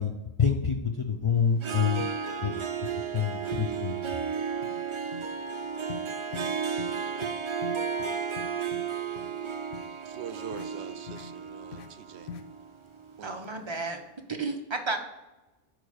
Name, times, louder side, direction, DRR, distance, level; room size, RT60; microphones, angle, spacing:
voice 1, 0.0-2.1 2.4-2.6 3.1-4.0, left 7 dB, 35° left, 1 dB, 0.5 m, -27 dB
Harp, 1.5-13.4, right 6 dB, 50° right, 0.3 m, -33 dB
Finger sweep across wood, 3.7-3.8 4.1-4.3 4.6-4.8 5.1-5.3 5.9-6.1 6.3-6.5 6.8-7.0 7.2-7.3 7.6-8.8 9.2-9.3 9.7-9.9 10.5-10.7 11.1-11.3 11.7-11.9 12.3-12.4, left 7 dB, 75° left, 0.9 m, -42 dB
voice 2, 10.0-12.3 13.2-13.4, right 8 dB, 75° right, 11 dB, 0.8 m, -44 dB
voice 3, 13.2-14.0 14.4-15.0, right 3 dB, 25° right, 3 dB, 0.9 m, -32 dB
9.1 x 3.1 x 6.5 m, 1.1 s
omnidirectional pair, 1.2 m